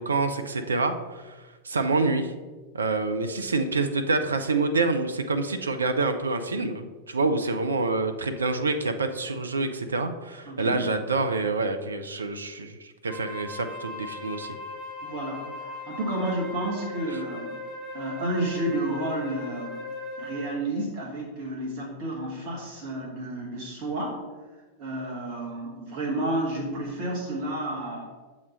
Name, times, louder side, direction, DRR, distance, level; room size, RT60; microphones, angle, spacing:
voice 1, 0.0-2.3 2.7-14.5, right 3 dB, 75° right, 8 dB, 0.4 m, -27 dB
voice 2, 10.5-10.8 15.0-17.6 17.9-19.8 20.2-24.2 24.8-28.0, right 1 dB, 40° right, -2 dB, 1.2 m, -31 dB
Wind instrument woodwind instrument, 13.1-20.7, left 2 dB, 10° left, 1.7 m, -38 dB
7.1 x 3.1 x 5.0 m, 1.3 s
figure-of-eight pair, 90°, 0 cm